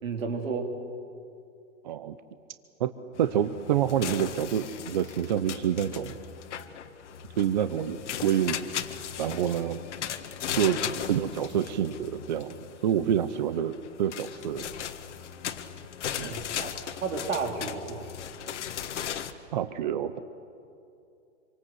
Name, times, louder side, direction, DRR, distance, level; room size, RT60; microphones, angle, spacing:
voice 1, 0.0-0.7 16.2-18.1, right 4 dB, 90° right, 3 dB, 4.4 m, -33 dB
sound 1, 3.1-19.3, left 9 dB, 65° left, 1.6 m, -37 dB
voice 2, 3.2-6.1 7.4-8.6 9.2-9.8 10.6-10.8 11.0-12.5 12.8-14.7 16.2-16.3 19.5-20.2, right 9 dB, 35° right, 12 dB, 0.7 m, -27 dB
26.5 x 24.5 x 8.0 m, 2.6 s
hypercardioid pair, 175°, 38 cm